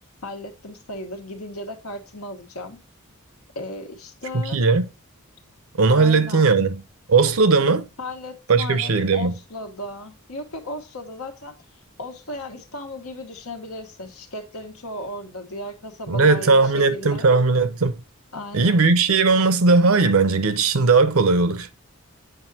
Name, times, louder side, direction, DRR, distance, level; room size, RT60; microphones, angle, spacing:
voice 1, 0.2-2.8 3.5-4.6 5.9-6.5 8.0-11.5 12.0-17.3 18.3-18.9, left 1 dB, 80° left, 1.3 m, -35 dB
voice 2, 4.3-4.9 5.8-6.8 7.1-7.9 8.5-9.3 16.1-18.0 18.5-21.7, right 4 dB, 70° right, 0.7 m, -18 dB
8.0 x 4.9 x 2.7 m
head